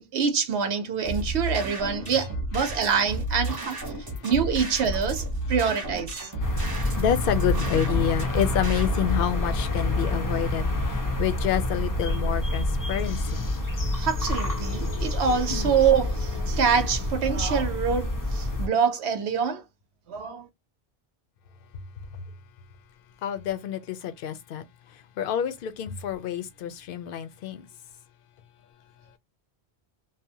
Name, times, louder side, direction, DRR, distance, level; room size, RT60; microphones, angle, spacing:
voice 1, 0.0-3.8 4.2-6.3 14.0-19.6 20.1-20.5, right 6 dB, 80° right, 0.9 m, -25 dB
sound 1, 1.0-9.1, right 1 dB, 25° right, 0.8 m, -32 dB
sound 2, 6.4-18.7, left 1 dB, 30° left, 0.4 m, -27 dB
voice 2, 7.0-13.4 15.5-15.7 23.2-24.6 25.2-27.6, left 10 dB, 65° left, 0.7 m, -28 dB
2.7 x 2.1 x 2.7 m
omnidirectional pair, 1.1 m